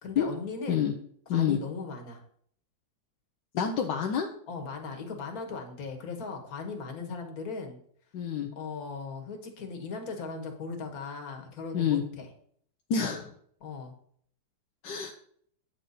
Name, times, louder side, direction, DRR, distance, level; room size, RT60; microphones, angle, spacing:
voice 1, 0.0-0.9 1.3-2.2 4.5-7.8 8.6-12.3 13.6-13.9, left 4 dB, 55° left, 3 dB, 1.9 m, -38 dB
voice 2, 3.5-4.3 7.1-7.2 8.1-8.5 11.7-12.0 12.9-13.3 14.8-15.1, left 8 dB, 75° left, 3 dB, 1.5 m, -27 dB
9.0 x 6.6 x 4.1 m, 0.62 s
omnidirectional pair, 1.9 m